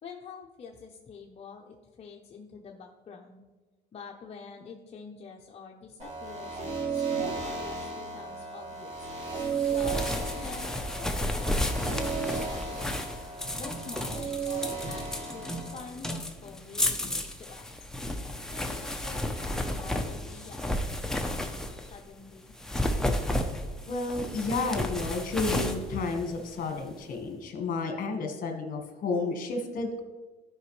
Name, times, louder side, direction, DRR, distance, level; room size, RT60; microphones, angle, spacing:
voice 1, 0.0-3.4 3.9-9.1 9.7-13.1 13.6-17.6 18.5-22.5, left 5 dB, 35° left, -1 dB, 0.8 m, -47 dB
sound 1, 6.0-15.8, right 5 dB, 40° right, 2.8 m, -34 dB
sound 2, 9.3-22.0 22.5-26.8, left 1 dB, 5° left, 0.7 m, -32 dB
voice 2, 23.9-30.0, left 3 dB, 55° left, 4 dB, 1.5 m, -31 dB
12.5 x 5.1 x 3.2 m, 1.2 s
cardioid pair, 110°, 17 cm